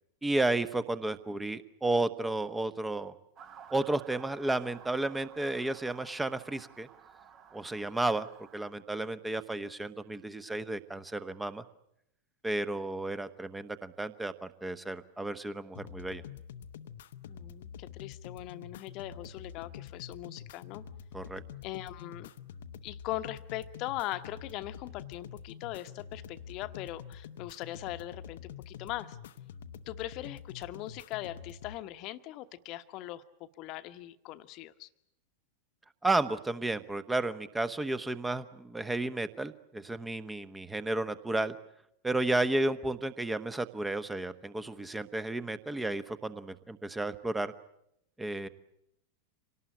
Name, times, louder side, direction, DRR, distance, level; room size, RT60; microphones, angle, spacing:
voice 1, 0.2-3.1 3.7-6.9 7.5-8.3 8.5-11.6 12.4-16.2 21.1-21.4 36.0-41.6 42.0-47.5 48.2-48.5, right 2 dB, 10° right, 13 dB, 1.1 m, -32 dB
Motor vehicle (road) / Siren, 3.4-8.7, right 7 dB, 30° right, 1.3 m, -54 dB
sound 1, 15.7-31.8, left 8 dB, 60° left, 0.8 m, -47 dB
voice 2, 17.3-20.8 21.6-22.3 22.8-29.2 29.9-34.9, left 15 dB, 40° left, 10 dB, 1.1 m, -40 dB
26.0 x 18.5 x 9.0 m, 0.80 s
figure-of-eight pair, 90°, 0 cm